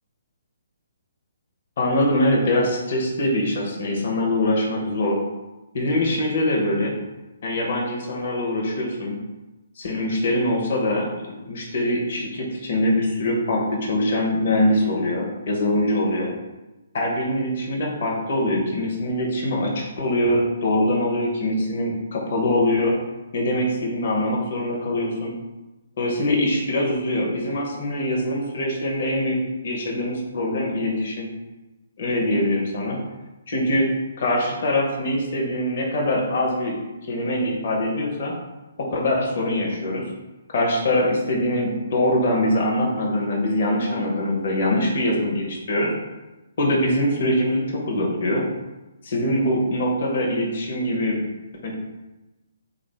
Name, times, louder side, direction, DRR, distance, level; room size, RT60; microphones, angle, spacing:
voice 1, 1.8-5.2 5.7-6.9 7.4-9.2 9.8-16.3 16.9-22.9 23.3-25.3 26.0-29.4 29.6-31.3 32.0-33.0 33.5-33.9 34.2-36.8 37.0-38.3 38.8-40.0 40.5-45.9 46.6-48.4 49.0-51.2 51.6-51.7, left 1 dB, 55° left, -2 dB, 0.8 m, -23 dB
3.6 x 2.5 x 3.3 m, 1.1 s
figure-of-eight pair, 140°, 0 cm